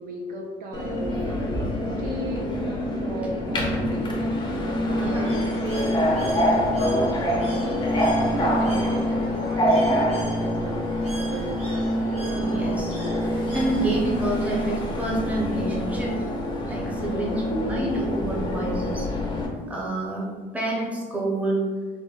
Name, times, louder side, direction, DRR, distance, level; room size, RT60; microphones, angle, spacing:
voice 1, 0.0-1.6 2.0-4.2 4.6-10.8 11.1-12.0 17.0-17.5, right 1 dB, 60° right, 0 dB, 0.4 m, -36 dB
Subway metro underground, 0.7-19.5, equal, 25° left, 0.5 m, -25 dB
voice 2, 5.0-5.3 8.6-8.8 12.3-16.2 16.7-20.3 20.5-21.6, right 1 dB, 10° right, -4 dB, 0.7 m, -28 dB
Bird, 5.2-14.2, right 1 dB, 40° right, 0.9 m, -44 dB
3.3 x 2.1 x 2.3 m, 1.5 s
cardioid pair, 110°, 17 cm